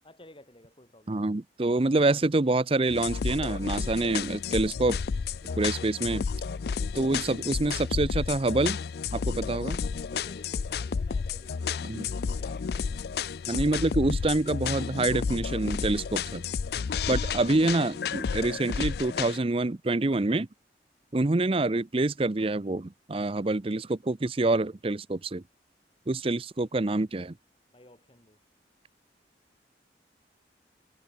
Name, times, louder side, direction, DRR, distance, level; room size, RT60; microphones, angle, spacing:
voice 1, 0.0-1.3 5.5-5.8 6.6-6.9 10.0-13.0 13.4-14.0 27.7-28.4, left 1 dB, 30° left, 3.9 m, -54 dB
voice 2, 1.1-5.0 5.6-6.2 6.9-8.8 9.1-9.8 11.8-12.1 13.5-16.4 17.1-20.5 21.1-25.4 26.1-27.3, right 2 dB, 30° right, 0.6 m, -26 dB
sound 1, 2.9-19.4, left 6 dB, 60° left, 0.4 m, -31 dB
head